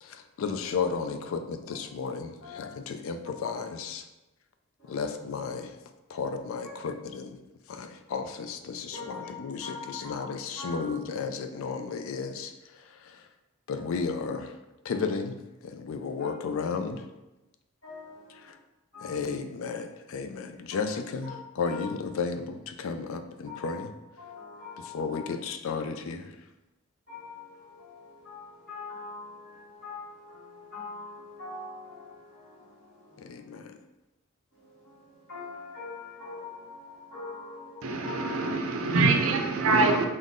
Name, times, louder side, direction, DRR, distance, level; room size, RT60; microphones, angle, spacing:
voice 1, 0.0-4.1 4.9-5.8 6.1-7.4 7.7-13.3 13.7-14.5 14.8-17.0 18.4-18.6 19.0-23.9 24.8-26.4 33.2-33.8, left 5 dB, 70° left, 8 dB, 0.3 m, -33 dB
voice 2, 2.4-2.7 4.8-5.0 8.9-9.3 9.6-10.2 10.6-10.9 13.7-13.8 16.2-16.3 17.8-18.5 18.9-19.2 20.7-20.8 21.2-21.3 21.6-21.8 23.4-23.8 24.2-25.2 27.1-33.4 34.5-39.0 39.6-39.9, left 4 dB, 45° left, -13 dB, 1.2 m, -43 dB
voice 3, 37.8-40.0, right 3 dB, 70° right, 3 dB, 0.5 m, -24 dB
3.8 x 2.0 x 3.6 m, 1.0 s
head